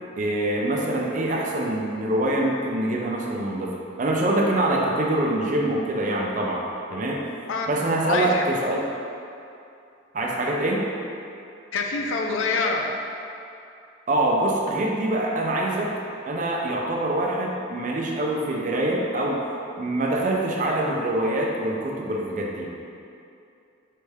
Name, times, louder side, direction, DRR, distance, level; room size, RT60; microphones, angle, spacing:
voice 1, 0.2-6.6 6.9-7.3 7.7-8.9 10.1-10.9 14.1-15.9 16.3-19.5 19.8-22.7, right 1 dB, 40° right, -1 dB, 0.4 m, -24 dB
voice 2, 8.1-8.4 11.7-13.0, left 3 dB, 85° left, 2 dB, 0.4 m, -25 dB
3.6 x 3.3 x 3.3 m, 2.6 s
head